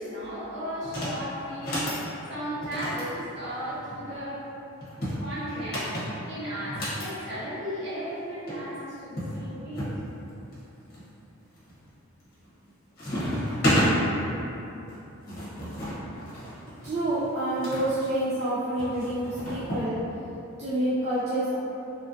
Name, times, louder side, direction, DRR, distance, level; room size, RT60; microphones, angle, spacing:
voice 1, 0.0-1.9 2.3-4.5 5.2-5.9 6.2-9.9, equal, 55° right, -10 dB, 0.9 m, -35 dB
sound 1, 0.8-1.2 1.5-2.0 2.6-4.0 4.8-7.1 8.2-8.3 8.5-8.6 9.2-10.0 10.5-11.0 11.6-11.9 12.3-12.7 13.0-13.9 14.9-17.8 18.8-19.9, equal, 45° left, 0.8 m, -31 dB
voice 2, 16.8-20.0 20.6-21.5, right 1 dB, 30° right, -11 dB, 0.3 m, -28 dB
3.0 x 2.6 x 2.5 m, 2.9 s
head